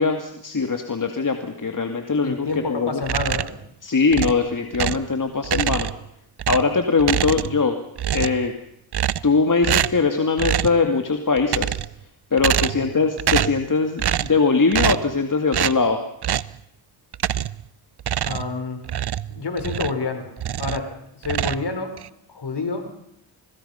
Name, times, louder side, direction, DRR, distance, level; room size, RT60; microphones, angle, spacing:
voice 1, 0.0-3.0 3.8-5.9 6.5-7.8 8.1-8.5 9.2-11.8 12.3-16.0, left 4 dB, 40° left, 5 dB, 2.2 m, -21 dB
voice 2, 2.2-3.5 12.7-12.9 18.2-18.8 19.3-20.3 20.6-21.9 22.3-22.9, left 4 dB, 60° left, 7 dB, 4.7 m, -28 dB
sound 1, 3.0-3.6 4.1-5.1 5.4-6.1 6.4-7.7 8.0-8.5 8.9-9.4 9.6-10.1 10.4-10.8 11.4-12.0 12.4-12.9 13.2-13.6 14.0-14.4 14.7-15.1 15.5-15.8 16.2-16.5 17.1-17.6 18.0-20.0 20.4-20.9 21.2-22.1, right 10 dB, 55° right, 0.8 m, -25 dB
25.5 x 20.5 x 5.7 m, 0.77 s
cardioid pair, 50°, 46 cm